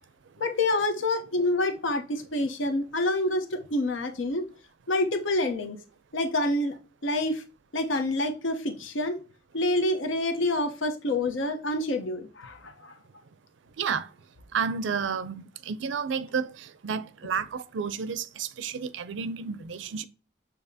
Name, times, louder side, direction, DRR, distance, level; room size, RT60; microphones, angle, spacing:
voice 1, 0.4-4.4 4.9-5.8 6.1-6.7 7.0-7.4 7.7-9.2 9.5-12.7, left 2 dB, 85° left, 0.9 m, -27 dB
voice 2, 13.8-14.1 14.5-20.1, right 6 dB, 75° right, 0.4 m, -31 dB
6.9 x 2.9 x 2.7 m
head